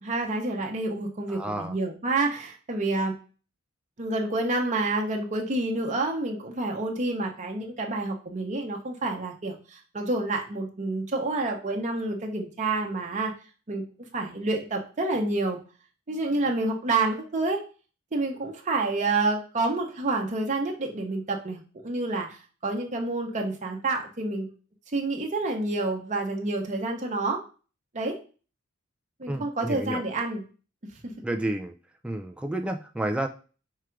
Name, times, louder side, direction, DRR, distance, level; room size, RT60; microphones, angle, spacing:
voice 1, 0.0-3.2 4.0-13.3 13.7-13.8 14.1-15.6 16.1-17.6 18.1-24.5 24.9-27.4 27.9-28.2 29.2-30.4 31.0-31.1, right 2 dB, 40° right, 1 dB, 0.8 m, -28 dB
voice 2, 1.3-1.7 29.3-30.0 31.2-31.7 32.0-33.3, right 1 dB, 5° right, 4 dB, 0.3 m, -30 dB
4.7 x 2.5 x 4.4 m, 0.36 s
head